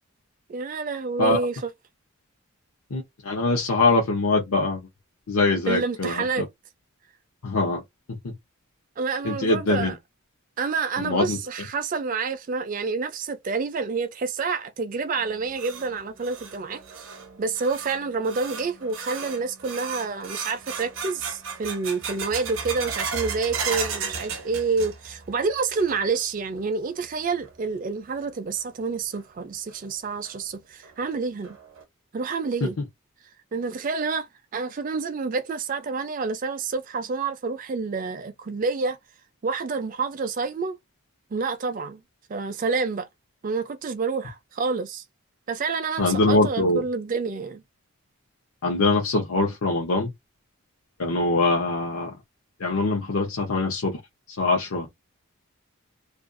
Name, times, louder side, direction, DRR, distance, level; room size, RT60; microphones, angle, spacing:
voice 1, 0.5-1.6 5.7-6.5 9.0-10.0 10.6-31.6 32.1-32.8 33.5-39.0 39.4-40.8 41.3-42.0 42.3-43.1 43.4-45.0 45.5-47.6, right 4 dB, 35° right, 0.4 m, -28 dB
voice 2, 2.9-4.9 5.3-6.5 7.4-7.8 8.2-8.3 9.2-9.9 11.0-11.4 46.0-46.8 48.6-50.1 51.0-52.2 52.6-54.0 54.3-54.9, left 2 dB, 75° left, 0.7 m, -23 dB
sound 1, 15.2-25.3 25.6-26.2 26.6-26.7 27.4-27.5 29.1-29.2 29.7-29.8 30.3-30.4 30.8-30.9 31.4-31.8, right 5 dB, 60° right, 0.7 m, -35 dB
2.4 x 2.2 x 2.5 m
head